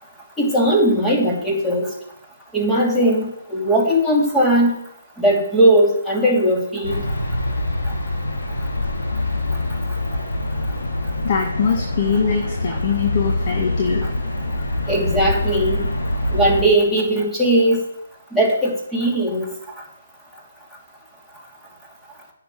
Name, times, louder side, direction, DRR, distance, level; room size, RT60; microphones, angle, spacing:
voice 1, 0.4-1.9 2.5-4.8 5.2-7.0 14.9-15.8 16.3-17.8 18.3-19.5, right 1 dB, 5° left, -3 dB, 2.8 m, -18 dB
sound 1, 6.8-16.6, left 1 dB, 80° left, 3.2 m, -24 dB
voice 2, 11.2-14.1, left 6 dB, 40° left, 1 dB, 1.8 m, -22 dB
9.4 x 6.7 x 8.6 m, 0.79 s
figure-of-eight pair, 145°, 0 cm